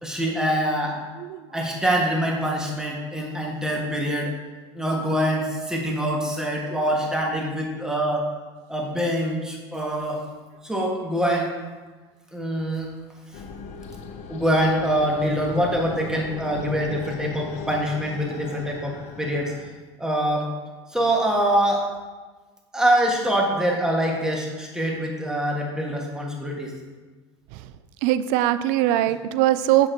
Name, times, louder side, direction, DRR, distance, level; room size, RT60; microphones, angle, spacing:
voice 1, 0.0-1.0 1.5-4.3 4.7-8.3 8.7-10.2 10.6-11.5 12.3-12.9 14.3-19.5 20.0-20.5 20.9-21.9 22.7-26.7, equal, 5° right, -1 dB, 1.4 m, -24 dB
sound 1, 13.3-19.7, left 4 dB, 50° left, 0.8 m, -38 dB
voice 2, 28.0-29.9, right 13 dB, 60° right, 14 dB, 0.4 m, -21 dB
7.1 x 6.2 x 2.7 m, 1.3 s
hypercardioid pair, 80°, 15 cm